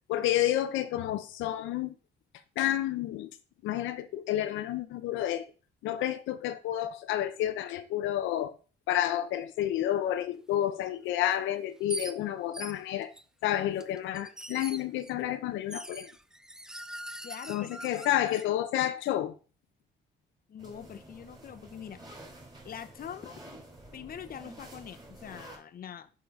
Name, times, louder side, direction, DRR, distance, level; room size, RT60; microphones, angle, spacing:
voice 1, 0.1-2.0 2.6-3.3 3.6-5.5 5.8-8.5 8.9-13.1 13.4-16.1 17.5-19.3, left 12 dB, 90° left, 0.6 m, -30 dB
sound 1, 11.3-11.4 11.9-12.1 12.5-13.2 13.8-15.1 15.7-18.5, right 1 dB, 5° right, 0.5 m, -42 dB
voice 2, 17.2-17.7 18.0-18.3 18.7-18.9 20.5-22.0 22.6-23.4 23.9-26.1, left 9 dB, 50° left, 0.7 m, -44 dB
sound 2, 20.6-25.6, right 1 dB, 20° right, 3.5 m, -50 dB
6.8 x 3.9 x 5.2 m
cardioid pair, 80°, 19 cm